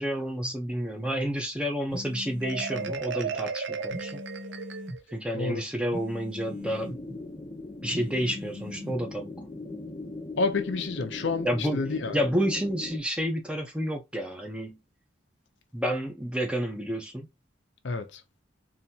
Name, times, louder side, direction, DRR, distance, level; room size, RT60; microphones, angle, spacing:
voice 1, 0.0-4.2 5.1-6.9 7.8-9.3 11.4-11.8 12.1-14.8 15.7-17.3, equal, 5° right, 0.8 m, -30 dB
sound 1, 1.9-3.0 3.9-5.0 5.9-7.0 7.9-9.0, left 1 dB, 40° right, 1.6 m, -40 dB
Marimba xylophone, 2.4-5.2, right 5 dB, 65° right, 0.5 m, -34 dB
sound 2, 6.4-13.0, left 2 dB, 25° left, 0.6 m, -40 dB
voice 2, 10.4-11.5 11.7-12.2 17.8-18.2, left 3 dB, 65° left, 0.6 m, -29 dB
4.0 x 2.8 x 2.7 m
head